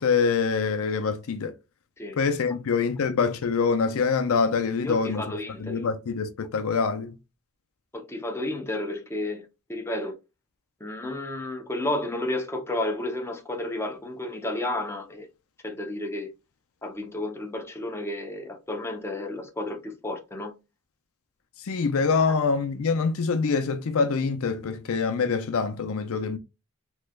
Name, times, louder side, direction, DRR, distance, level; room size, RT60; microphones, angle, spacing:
voice 1, 0.0-1.5 2.2-7.1 21.6-26.4, left 5 dB, 65° left, 0.5 m, -25 dB
voice 2, 4.8-5.8 7.9-10.1 10.8-15.3 15.6-16.3 16.8-20.5, left 1 dB, 10° left, 0.6 m, -32 dB
3.3 x 3.0 x 2.3 m
head